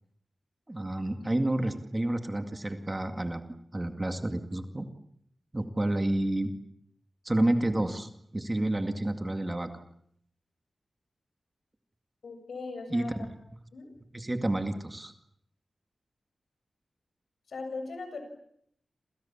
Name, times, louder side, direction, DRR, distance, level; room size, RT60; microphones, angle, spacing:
voice 1, 0.7-3.5 3.7-4.9 5.5-6.5 7.2-9.7 12.9-13.1 14.1-15.1, right 1 dB, 20° right, 7 dB, 2.2 m, -29 dB
voice 2, 12.2-13.3 13.7-13.9 17.5-18.2, left 3 dB, 80° left, 7 dB, 7.3 m, -39 dB
28.5 x 28.5 x 7.3 m, 0.71 s
wide cardioid pair, 140°, 0 cm